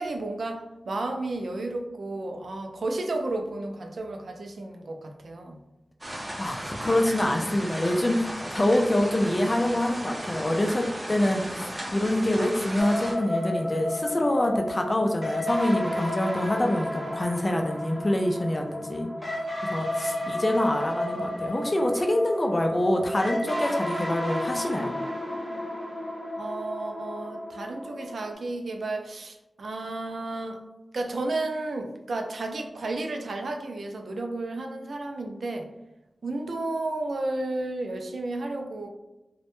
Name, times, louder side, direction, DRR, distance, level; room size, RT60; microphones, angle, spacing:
voice 1, 0.0-5.6 19.9-20.2 26.4-30.6 30.9-35.7 36.2-38.9, right 2 dB, 90° right, 3 dB, 0.3 m, -32 dB
sound 1, 6.0-13.1, equal, 30° right, 0.6 m, -36 dB
voice 2, 6.4-8.2 8.5-19.1 19.7-24.9, left 1 dB, 35° left, 3 dB, 0.3 m, -25 dB
sound 2, 12.8-28.3, left 1 dB, 15° left, 0.7 m, -32 dB
2.1 x 2.0 x 2.9 m, 0.97 s
wide cardioid pair, 80°, 0 cm